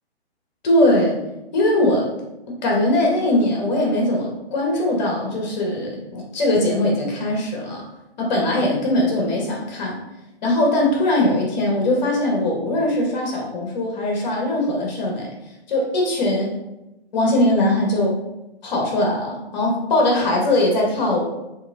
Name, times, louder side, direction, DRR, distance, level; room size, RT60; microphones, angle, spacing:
voice 1, 0.6-1.2 1.5-2.1 2.5-7.8 8.2-10.0 10.4-15.3 15.7-16.5 17.1-18.2 18.6-21.2, left 1 dB, 45° left, -1 dB, 1.9 m, -20 dB
7.0 x 3.5 x 3.9 m, 0.96 s
figure-of-eight pair, 130°, 32 cm